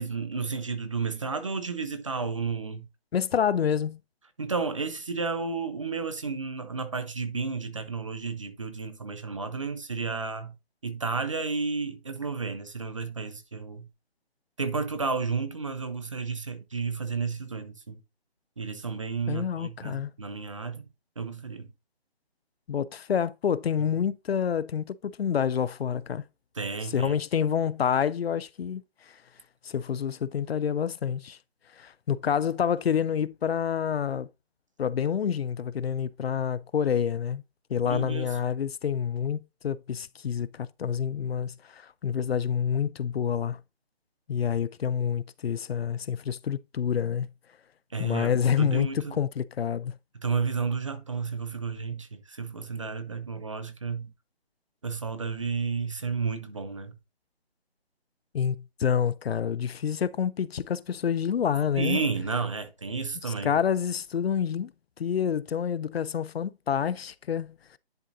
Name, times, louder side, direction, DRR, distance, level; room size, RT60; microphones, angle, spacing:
voice 1, 0.0-2.9 4.4-10.5 10.8-13.9 14.6-18.0 18.6-20.8 21.2-21.7 26.6-27.2 37.8-38.3 47.9-49.2 50.2-54.1 54.8-56.9 61.8-63.5, right 4 dB, 30° right, 0.6 m, -32 dB
voice 2, 3.1-4.0 19.3-20.1 22.7-26.2 26.8-29.2 29.6-31.4 31.8-34.3 34.8-37.4 37.7-43.6 44.3-47.3 48.0-50.0 58.3-62.0 63.2-64.7 65.0-67.6, left 8 dB, 70° left, 0.5 m, -28 dB
10.5 x 3.7 x 2.6 m
hypercardioid pair, 165°, 32 cm